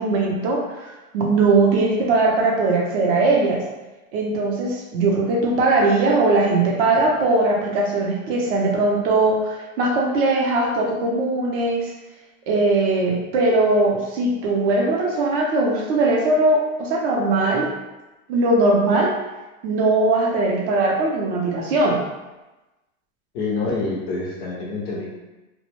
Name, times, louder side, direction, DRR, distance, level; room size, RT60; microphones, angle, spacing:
voice 1, 0.0-3.6 4.1-11.9 12.5-17.7 18.3-19.1 19.6-22.0, right 2 dB, 40° right, -1 dB, 0.6 m, -20 dB
voice 2, 23.3-25.1, left 3 dB, 25° left, -3 dB, 0.4 m, -26 dB
2.1 x 2.1 x 2.9 m, 1.1 s
supercardioid pair, 145°, 42 cm